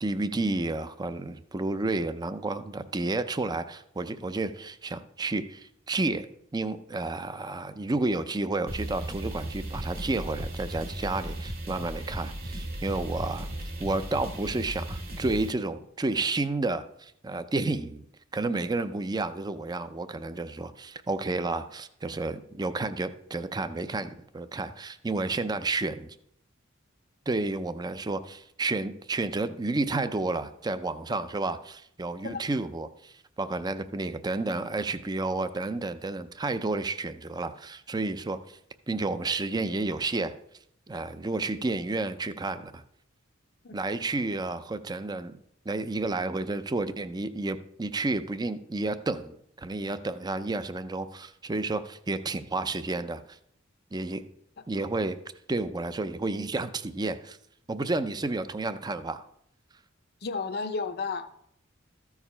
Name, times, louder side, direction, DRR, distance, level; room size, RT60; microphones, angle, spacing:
voice 1, 0.0-18.0 18.3-26.1 27.3-38.6 38.9-40.3 40.9-42.8 43.7-45.4 45.7-53.4 53.9-54.2 54.7-55.2 55.5-57.4 57.7-59.3, right 2 dB, 20° right, 11 dB, 0.5 m, -31 dB
sound 1, 8.7-15.5, right 1 dB, 50° right, 2.6 m, -36 dB
voice 2, 60.2-61.3, left 4 dB, 55° left, 7 dB, 0.6 m, -32 dB
14.0 x 4.8 x 5.5 m, 0.72 s
head